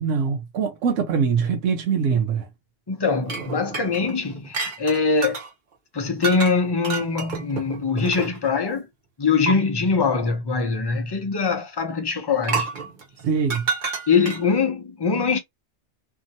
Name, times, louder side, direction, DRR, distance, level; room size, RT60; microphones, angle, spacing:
voice 1, 0.0-2.5 13.3-13.7, right 6 dB, 85° right, 1.0 m, -23 dB
voice 2, 2.9-5.4 5.9-8.9 9.2-12.7 14.1-15.4, left 4 dB, 30° left, 0.5 m, -23 dB
sound 1, 3.3-5.5 6.2-6.5 6.8-8.6 9.5-9.6 12.4-14.6, right 5 dB, 45° right, 0.9 m, -30 dB
2.8 x 2.6 x 2.6 m
omnidirectional pair, 1.3 m